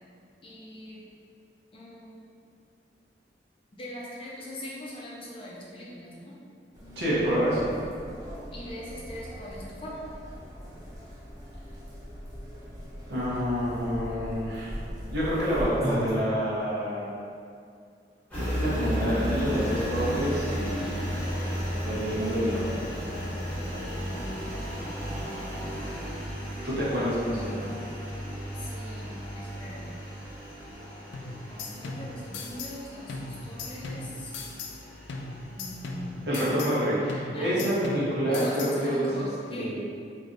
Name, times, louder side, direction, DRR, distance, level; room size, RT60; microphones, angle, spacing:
voice 1, 0.4-1.0 1.7-2.2 3.7-6.3 8.5-9.9 28.5-29.9 31.5-34.3 35.5-36.3 37.3-37.8 38.3-39.9, equal, 30° left, -5 dB, 0.5 m, -40 dB
sound 1, 6.7-16.1, equal, 20° right, 0.5 m, -39 dB
voice 2, 7.0-7.7 13.1-14.7 15.1-17.1 18.4-21.0 21.8-22.9 26.6-27.7 36.3-39.1 39.5-39.9, equal, 70° right, -8 dB, 0.8 m, -27 dB
Engine, 18.3-36.3, equal, 10° left, 0.8 m, -34 dB
sound 2, 31.1-32.8 33.1-34.8 35.1-36.8 37.1-38.8, left 3 dB, 85° left, 0.3 m, -39 dB
3.3 x 2.6 x 2.5 m, 2.4 s
head